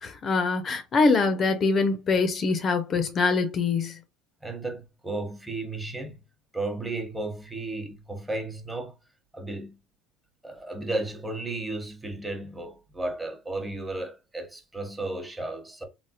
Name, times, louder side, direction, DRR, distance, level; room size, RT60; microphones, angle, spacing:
voice 1, 0.0-4.0, left 4 dB, 40° left, 0.5 m, -24 dB
voice 2, 4.4-6.2 6.5-8.9 9.3-9.8 10.4-15.8, right 2 dB, 10° right, 0.9 m, -34 dB
3.3 x 2.0 x 2.8 m
hypercardioid pair, 80°, 0 cm